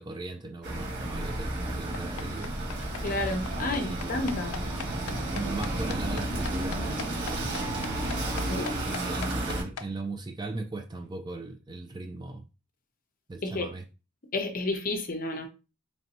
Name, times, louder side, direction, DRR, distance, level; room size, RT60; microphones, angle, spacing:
voice 1, 0.0-2.5 3.6-4.3 5.3-7.8 8.3-12.4 13.3-13.8, right 3 dB, 20° right, 0.3 m, -38 dB
sound 1, 0.6-9.6, right 1 dB, 50° right, 1.8 m, -32 dB
sound 2, 1.9-9.9, left 7 dB, 75° left, 0.4 m, -39 dB
voice 2, 3.0-4.6 8.5-8.7 13.4-13.7 14.3-15.5, left 2 dB, 40° left, 0.7 m, -31 dB
3.3 x 2.7 x 4.1 m
head